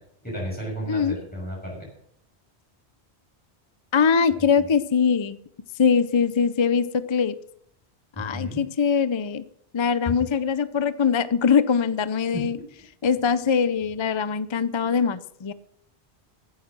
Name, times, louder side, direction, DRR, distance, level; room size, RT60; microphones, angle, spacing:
voice 1, 0.2-1.9 4.4-4.7 8.1-8.6 12.3-12.6, equal, 10° left, -5 dB, 6.3 m, -33 dB
voice 2, 3.9-5.4 5.8-7.3 8.2-9.4 9.7-12.6 13.0-15.5, left 6 dB, 35° left, 14 dB, 0.5 m, -22 dB
14.5 x 9.7 x 6.1 m, 0.70 s
omnidirectional pair, 1.1 m